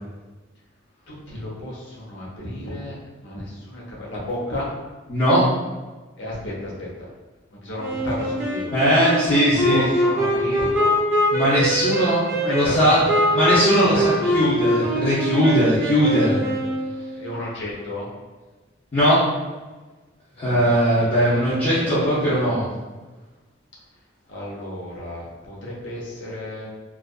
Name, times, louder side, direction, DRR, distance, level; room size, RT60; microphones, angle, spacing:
voice 1, 1.1-3.0 3.2-4.7 6.2-7.1 7.5-8.7 9.2-11.0 12.3-14.5 16.3-16.4 17.1-18.1 20.4-22.6 24.3-26.7, left 1 dB, 70° left, -5 dB, 0.8 m, -33 dB
voice 2, 5.1-5.5 8.7-9.8 11.3-12.2 12.5-13.0 13.3-16.4 18.9-19.3 20.4-22.7, equal, 30° left, -12 dB, 0.6 m, -19 dB
Wind instrument woodwind instrument, 7.8-17.3, equal, 15° right, 0.5 m, -23 dB
2.6 x 2.4 x 2.3 m, 1.2 s
head